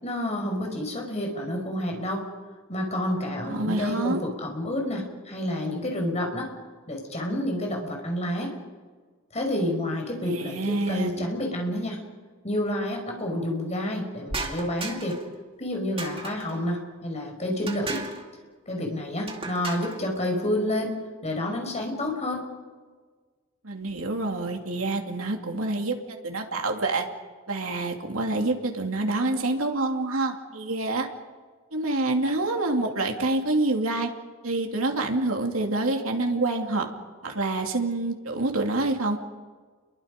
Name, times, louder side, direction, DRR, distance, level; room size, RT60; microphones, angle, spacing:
voice 1, 0.0-2.3 2.7-6.5 6.9-8.5 9.3-12.0 12.4-15.2 15.6-18.0 18.7-21.0 21.2-22.4, left 1 dB, 35° left, 2 dB, 5.6 m, -29 dB
voice 2, 3.5-4.2 10.2-11.3 23.6-25.9 26.2-27.0 27.5-31.1 31.7-34.1 34.4-36.9 37.2-39.2, right 2 dB, 80° right, 2 dB, 2.7 m, -27 dB
sound 1, 14.3-15.3 16.0-16.6 17.7-18.2 19.3-20.0, right 3 dB, 25° right, 2.4 m, -35 dB
30.0 x 23.0 x 5.3 m, 1.4 s
head